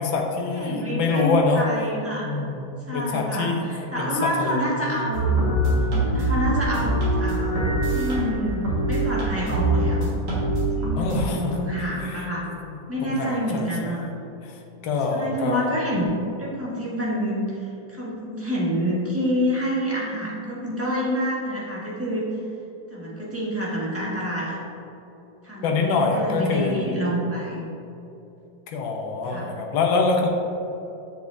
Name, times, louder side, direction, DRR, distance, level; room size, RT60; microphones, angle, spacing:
voice 1, 0.0-1.6 2.2-2.7 2.9-5.1 11.0-11.6 12.0-12.6 13.0-14.0 14.4-15.7 25.6-27.1 28.7-30.3, left 4 dB, 90° left, 2 dB, 1.5 m, -25 dB
voice 2, 0.5-2.4 2.9-5.5 6.1-6.9 7.2-7.6 7.9-10.2 10.7-12.5 12.9-14.0 15.1-22.2 22.9-24.6 25.4-27.6 29.2-29.5, equal, 10° right, -7 dB, 1.1 m, -28 dB
sound 1, 5.1-11.2, right 1 dB, 60° right, 2.2 m, -23 dB
7.1 x 7.0 x 2.6 m, 2.9 s
omnidirectional pair, 2.0 m